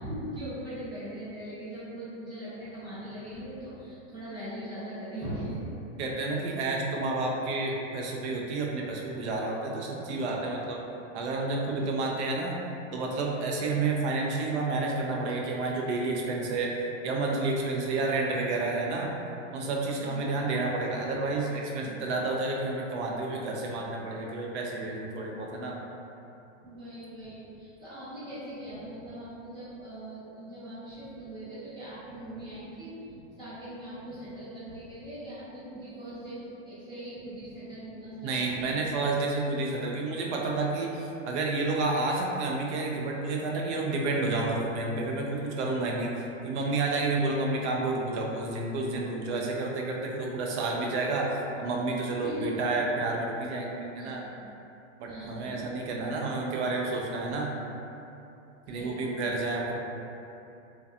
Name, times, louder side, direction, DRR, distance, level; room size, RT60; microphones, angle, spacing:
voice 1, 0.0-5.6 20.0-20.2 26.6-38.9 47.1-47.2 52.2-52.6 54.0-54.4 55.0-55.8 58.7-59.3, equal, 10° right, -14 dB, 0.8 m, -40 dB
voice 2, 6.0-10.8 11.1-12.6 12.9-16.7 17.0-19.1 19.5-25.8 38.2-54.2 55.0-57.5 58.7-59.8, right 3 dB, 60° right, -1 dB, 0.5 m, -30 dB
2.7 x 2.2 x 2.4 m, 2.8 s
supercardioid pair, 160°, 38 cm